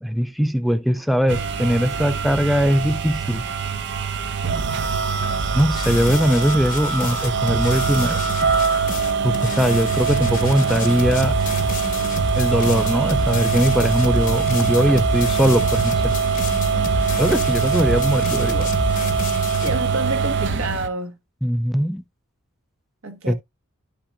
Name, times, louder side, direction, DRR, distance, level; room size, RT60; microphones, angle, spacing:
voice 1, 0.0-3.4 5.5-8.2 9.2-11.4 12.3-16.1 17.2-18.7 21.4-22.0 23.3-23.4, equal, ahead, 0.4 m, -20 dB
sound 1, 1.3-20.9, right 5 dB, 55° right, 0.6 m, -23 dB
sound 2, 5.6-19.8, left 3 dB, 40° left, 0.9 m, -30 dB
voice 2, 19.6-21.2 23.0-23.3, right 2 dB, 75° right, 1.3 m, -28 dB
11.0 x 5.8 x 2.3 m
head